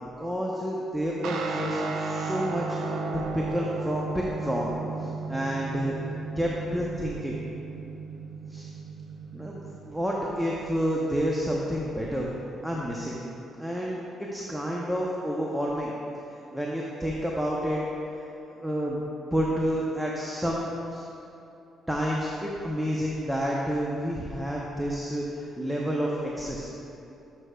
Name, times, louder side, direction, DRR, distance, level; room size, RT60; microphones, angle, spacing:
voice 1, 0.0-3.0 3.3-4.7 5.0-5.9 6.4-7.4 8.5-8.7 9.3-9.6 9.9-12.3 12.6-13.2 13.6-15.9 16.3-17.8 18.1-19.0 19.3-21.0 21.9-26.7, equal, 5° right, -3 dB, 0.7 m, -29 dB
Guitar, 1.2-10.9, right 4 dB, 85° right, 0.5 m, -35 dB
11.0 x 6.2 x 2.3 m, 2.8 s
cardioid pair, 90°, 0 cm